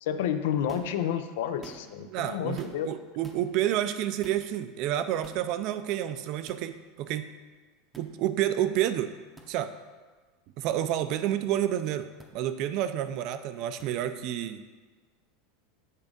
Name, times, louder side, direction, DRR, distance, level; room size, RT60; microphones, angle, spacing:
voice 1, 0.0-2.9, left 9 dB, 80° left, 9 dB, 0.5 m, -30 dB
sound 1, 0.7-1.0 1.5-2.1 2.6-2.9 3.2-3.4 4.2-4.5 5.2-5.5 6.5-6.6 7.9-8.1 9.4-9.5 10.7-10.8 12.2-12.3 13.8-13.9, right 2 dB, 10° right, 0.7 m, -49 dB
voice 2, 2.1-7.3 8.0-9.1 9.5-9.7 10.6-14.6, right 12 dB, 50° right, 11 dB, 0.4 m, -29 dB
8.2 x 3.6 x 5.1 m, 1.4 s
supercardioid pair, 150°, 0 cm